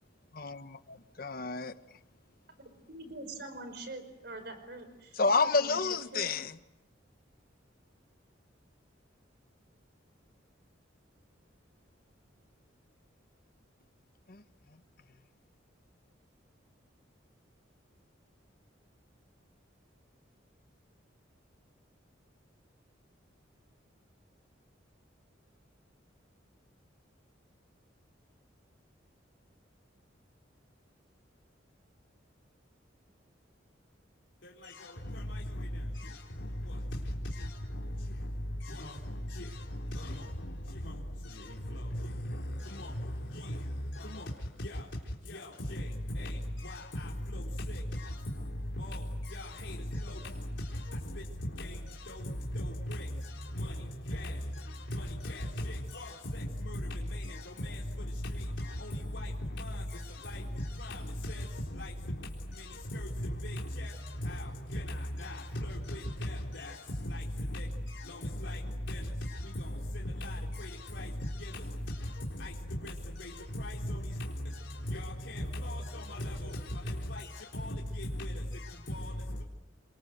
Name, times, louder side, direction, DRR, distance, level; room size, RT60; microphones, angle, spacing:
voice 1, 0.3-1.7 5.2-6.6 14.3-14.4, left 4 dB, 50° left, 1.2 m, -30 dB
voice 2, 2.6-5.8 6.1-6.3, right 2 dB, 55° right, 5.1 m, -44 dB
voice 3, 34.4-79.4, left 1 dB, 70° left, 3.9 m, -38 dB
29.5 x 24.0 x 7.9 m
head